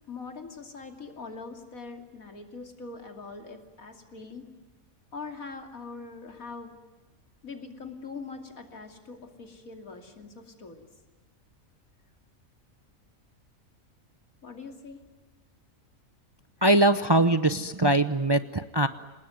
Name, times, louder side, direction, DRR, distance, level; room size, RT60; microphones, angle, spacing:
voice 1, 0.1-4.5 5.1-6.8 7.4-10.9 14.4-15.0, left 4 dB, 80° left, 5 dB, 3.2 m, -42 dB
voice 2, 16.6-18.9, right 1 dB, 25° right, 12 dB, 0.6 m, -22 dB
27.5 x 19.5 x 9.5 m, 1.3 s
omnidirectional pair, 1.4 m